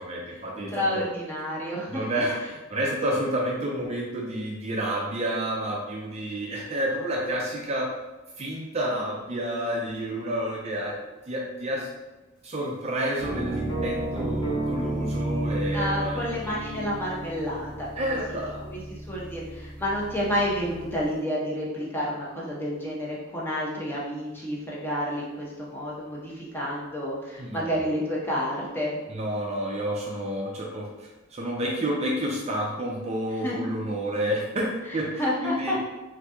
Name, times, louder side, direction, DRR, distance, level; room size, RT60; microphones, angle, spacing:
voice 1, 0.0-1.0 1.9-7.9 8.4-11.0 11.3-11.9 12.4-16.8 18.0-18.7 27.4-27.9 29.1-35.8, right 1 dB, 30° right, -2 dB, 0.4 m, -30 dB
voice 2, 0.7-2.1 15.7-18.4 18.7-29.0 33.4-33.5 35.2-35.9, equal, 10° left, -5 dB, 0.6 m, -30 dB
sound 1, 13.2-21.1, right 1 dB, 80° left, 1.1 m, -32 dB
2.9 x 2.6 x 3.4 m, 1.1 s
head